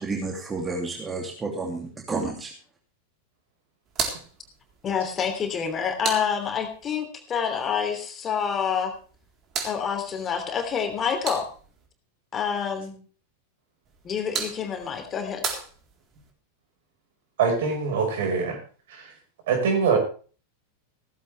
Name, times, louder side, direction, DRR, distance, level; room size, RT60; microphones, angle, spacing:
voice 1, 0.0-2.5, right 3 dB, 15° right, 1 dB, 2.9 m, -31 dB
sound 1, 3.9-6.9 8.9-11.9 13.8-16.3, right 6 dB, 30° right, 3.9 m, -36 dB
voice 2, 4.8-8.9 9.6-11.5 12.3-13.0 14.0-15.4, left 7 dB, 25° left, 5 dB, 3.0 m, -27 dB
voice 3, 17.4-18.6 19.5-20.0, right 5 dB, 55° right, 3 dB, 5.3 m, -23 dB
16.5 x 14.5 x 3.5 m, 0.40 s
figure-of-eight pair, 90°, 0 cm